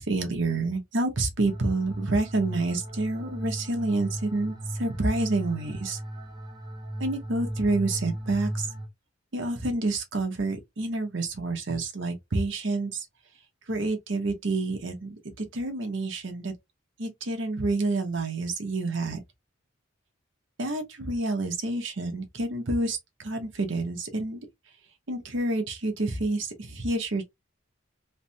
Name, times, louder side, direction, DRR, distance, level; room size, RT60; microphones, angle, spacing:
voice 1, 0.0-6.0 7.0-8.7 9.3-13.1 13.7-16.5 17.0-19.2 20.6-24.4 25.1-27.2, right 2 dB, 65° right, 0.9 m, -28 dB
sound 1, 1.4-8.9, right 1 dB, 20° right, 0.7 m, -36 dB
3.2 x 2.1 x 2.7 m
head